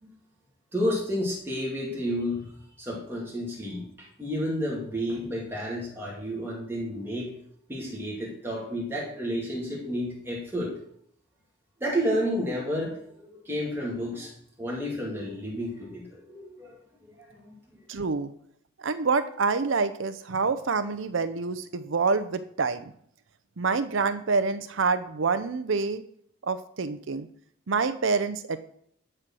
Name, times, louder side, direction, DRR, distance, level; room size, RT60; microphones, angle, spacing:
voice 1, 0.7-2.5 2.8-7.3 7.7-10.7 11.8-14.3 14.6-17.5, equal, 10° right, -4 dB, 2.6 m, -31 dB
voice 2, 17.9-18.3 18.8-22.9 23.6-26.0 26.4-27.3 27.7-28.6, right 4 dB, 75° right, 10 dB, 0.6 m, -27 dB
13.0 x 4.4 x 6.2 m, 0.65 s
head